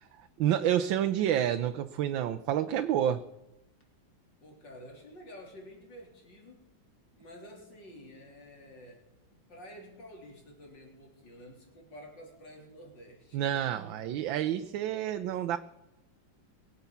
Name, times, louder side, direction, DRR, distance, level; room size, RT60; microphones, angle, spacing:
voice 1, 0.2-3.2 13.3-15.6, right 10 dB, 85° right, 9 dB, 1.5 m, -29 dB
voice 2, 4.4-6.6 7.2-13.8, equal, 70° left, 0 dB, 4.4 m, -50 dB
22.5 x 8.0 x 7.1 m, 0.93 s
omnidirectional pair, 2.0 m